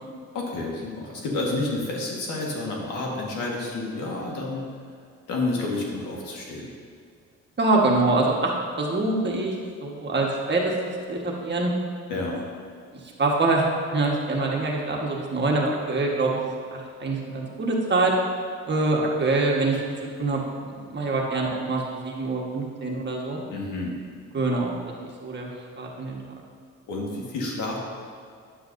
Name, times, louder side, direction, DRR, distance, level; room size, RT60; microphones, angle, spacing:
voice 1, 0.3-4.7 5.3-6.7 12.1-12.4 23.5-24.0 26.9-27.8, left 2 dB, 90° left, -2 dB, 1.6 m, -29 dB
voice 2, 7.6-8.5 8.8-9.5 9.8-10.7 11.1-11.7 12.9-18.1 18.7-19.8 20.2-23.4 24.3-25.5 25.8-26.2, right 2 dB, 35° right, -1 dB, 1.4 m, -25 dB
9.5 x 8.0 x 2.6 m, 2.2 s
cardioid pair, 90°, 30 cm